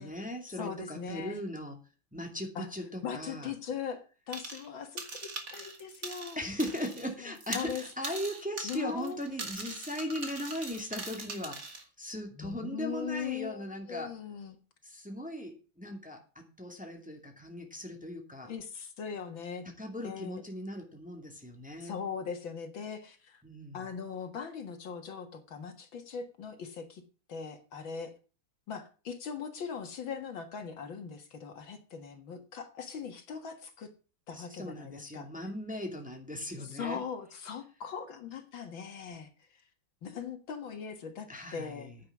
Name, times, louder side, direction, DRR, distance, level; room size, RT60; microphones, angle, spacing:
voice 1, 0.0-1.8 2.1-3.5 6.4-14.1 14.8-18.5 19.8-22.0 23.4-23.9 34.3-37.0 41.3-42.0, equal, 5° right, 2 dB, 2.3 m, -38 dB
voice 2, 0.6-1.4 2.6-2.7 3.0-6.4 7.2-7.8 8.6-9.2 12.3-14.6 18.4-19.6 20.0-20.4 21.8-23.4 23.7-27.0 27.3-28.1 28.7-33.9 34.3-35.3 36.6-39.6 40.0-41.9, left 6 dB, 70° left, 6 dB, 2.4 m, -40 dB
sound 1, 4.3-4.7 5.0-7.1 7.3-11.8, right 3 dB, 40° right, 2.5 m, -41 dB
10.0 x 9.4 x 6.0 m, 0.36 s
omnidirectional pair, 2.3 m